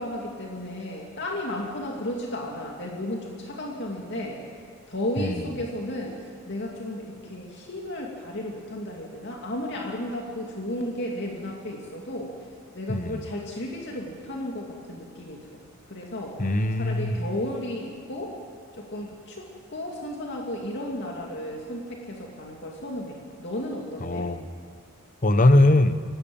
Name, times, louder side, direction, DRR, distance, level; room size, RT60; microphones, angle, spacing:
voice 1, 0.0-4.4 4.9-12.3 12.7-15.5 15.9-16.4 16.8-18.3 18.7-24.3, left 1 dB, 55° left, -1 dB, 2.6 m, -34 dB
voice 2, 12.9-13.3 16.4-17.2 24.0-24.5 25.2-25.9, left 2 dB, 40° left, 11 dB, 1.0 m, -21 dB
25.0 x 18.0 x 8.8 m, 2.2 s
head